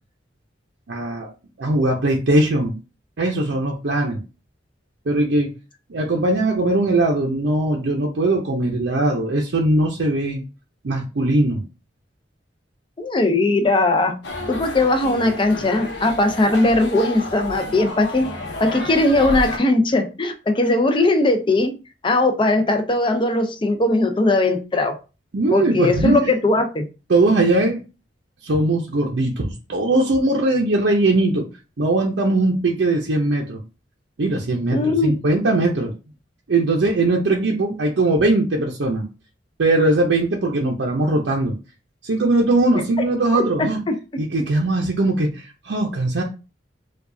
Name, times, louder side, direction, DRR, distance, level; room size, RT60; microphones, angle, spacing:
voice 1, 0.9-1.3 1.6-2.7 3.2-4.2 5.1-5.5 5.9-10.4 10.8-11.6 25.3-26.3 27.1-27.8 28.4-31.5 31.8-33.6 34.2-35.9 36.5-39.1 39.6-41.6 42.0-43.8 44.2-46.2, right 2 dB, 75° right, 0 dB, 0.6 m, -20 dB
voice 2, 13.0-14.2 14.5-18.3 18.6-21.7 22.0-25.0 25.5-26.9 34.7-35.2 43.3-44.2, left 2 dB, 30° left, 6 dB, 0.5 m, -19 dB
sound 1, 14.2-19.6, left 2 dB, 70° left, 0.8 m, -31 dB
4.6 x 2.3 x 2.6 m, 0.31 s
head